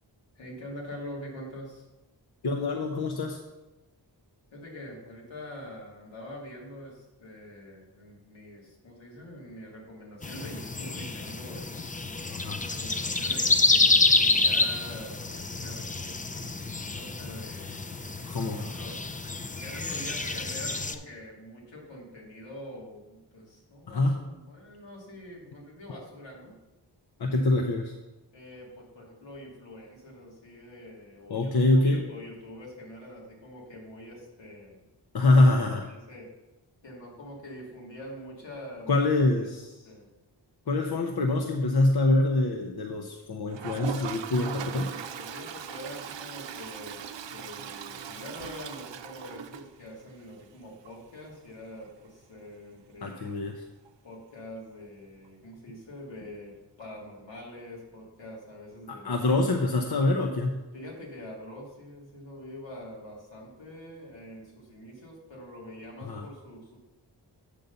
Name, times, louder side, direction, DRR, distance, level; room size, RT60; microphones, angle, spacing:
voice 1, 0.4-1.9 4.5-12.1 12.7-19.0 19.5-26.5 27.3-27.7 28.3-34.8 35.9-36.3 36.8-39.2 39.8-40.1 44.4-53.4 54.0-59.6 60.0-60.1 60.7-66.8, left 1 dB, 85° left, -3 dB, 2.4 m, -45 dB
voice 2, 2.4-3.4 12.3-12.6 18.3-18.7 23.9-24.2 27.2-27.9 31.3-32.0 35.1-35.9 38.9-39.6 40.7-44.9 53.0-53.6 58.9-60.6 66.0-66.2, left 2 dB, 60° left, 3 dB, 0.8 m, -25 dB
sound 1, 10.2-20.9, left 3 dB, 20° left, 0.5 m, -28 dB
Toilet flush, 43.5-50.2 50.5-50.6 50.8-50.9 51.2-51.3 53.8-53.9 55.2-55.3, right 8 dB, 85° right, 0.6 m, -39 dB
8.3 x 3.9 x 6.8 m, 1.0 s
wide cardioid pair, 75°, 43 cm